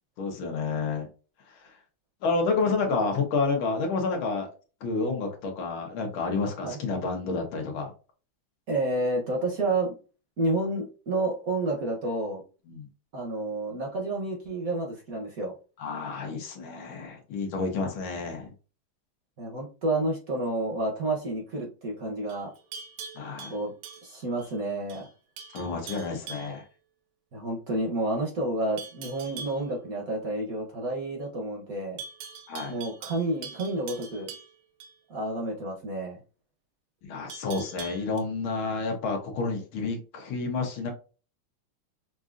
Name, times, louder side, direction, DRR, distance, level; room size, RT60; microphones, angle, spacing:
voice 1, 0.2-1.1 1.5-1.6 2.2-4.5 4.8-7.9 12.7-12.9 15.8-18.5 23.2-23.5 25.5-26.6 32.5-32.8 37.0-40.9, left 4 dB, 75° left, 3 dB, 1.8 m, -29 dB
voice 2, 8.7-9.9 10.4-12.4 13.1-15.5 19.4-22.5 23.5-23.7 24.0-25.1 27.3-32.0 32.7-34.3 35.1-36.2, right 2 dB, 55° right, 0 dB, 1.1 m, -30 dB
Livestock farm animals working animals, 22.3-24.5 24.9-25.1 25.4-26.6 28.8-29.6 32.0-34.9 37.3-38.2, right 5 dB, 80° right, 1.5 m, -43 dB
5.9 x 2.6 x 2.5 m, 0.35 s
omnidirectional pair, 2.3 m